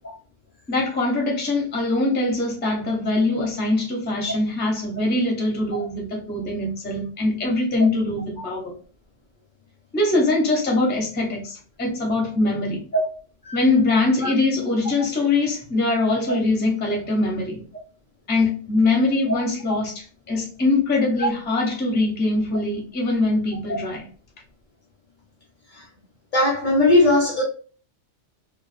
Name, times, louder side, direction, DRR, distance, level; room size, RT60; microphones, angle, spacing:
voice 1, 0.7-8.7 9.9-12.8 13.5-17.6 18.3-24.0, left 2 dB, 10° left, 0.5 m, -22 dB
voice 2, 26.3-27.4, left 1 dB, 50° left, 0.7 m, -19 dB
2.4 x 2.2 x 2.4 m
omnidirectional pair, 1.3 m